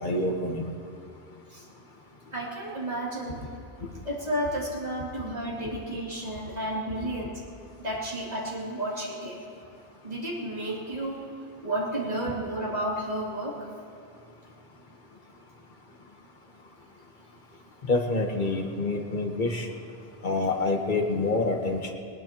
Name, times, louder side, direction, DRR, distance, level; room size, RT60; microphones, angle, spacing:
voice 1, 0.0-0.7 17.9-19.7 20.2-21.9, left 2 dB, 50° left, 2 dB, 1.4 m, -27 dB
voice 2, 2.3-3.4 4.0-7.4 7.8-9.4 10.0-11.2 11.6-13.7, right 1 dB, 40° right, -6 dB, 2.9 m, -32 dB
20.0 x 19.5 x 3.0 m, 2.5 s
omnidirectional pair, 1.1 m